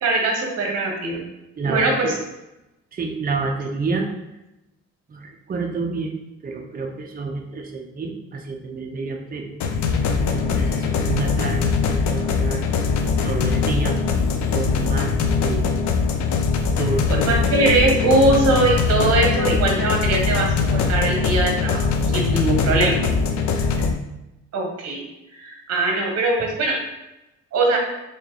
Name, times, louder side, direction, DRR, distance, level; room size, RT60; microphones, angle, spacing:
voice 1, 0.0-1.2 1.6-2.1 17.1-23.0 24.5-25.0 25.3-26.8 27.5-27.8, right 2 dB, 55° right, 1 dB, 1.0 m, -21 dB
voice 2, 1.6-2.2 2.9-4.1 5.1-6.1 6.4-9.5 9.9-10.0 10.4-12.6 13.2-14.0 14.5-15.1 15.4-15.8 16.8-17.4 22.2-22.8, right 3 dB, 30° right, 1 dB, 0.6 m, -29 dB
sound 1, 9.6-23.9, left 5 dB, 70° left, 0.5 m, -21 dB
3.6 x 3.0 x 2.9 m, 0.94 s
cardioid pair, 90°, 30 cm